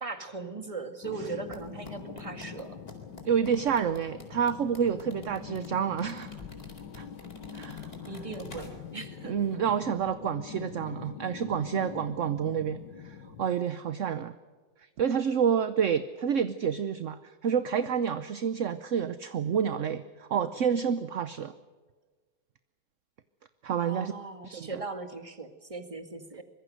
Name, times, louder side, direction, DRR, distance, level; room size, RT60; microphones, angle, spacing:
voice 1, 0.0-2.8 8.1-8.7 8.9-9.3 23.8-26.4, right 4 dB, 20° right, 8 dB, 2.0 m, -39 dB
sound 1, 1.0-13.5, left 7 dB, 75° left, 2.0 m, -44 dB
sound 2, 1.5-9.1 9.3-9.5, left 1 dB, 30° left, 4.1 m, -50 dB
voice 2, 3.2-6.3 7.0-7.1 7.5-7.9 9.2-14.3 15.0-21.5 23.6-24.1 24.4-24.8, right 7 dB, 55° right, 12 dB, 1.0 m, -29 dB
24.5 x 22.0 x 6.5 m, 1.4 s
omnidirectional pair, 1.9 m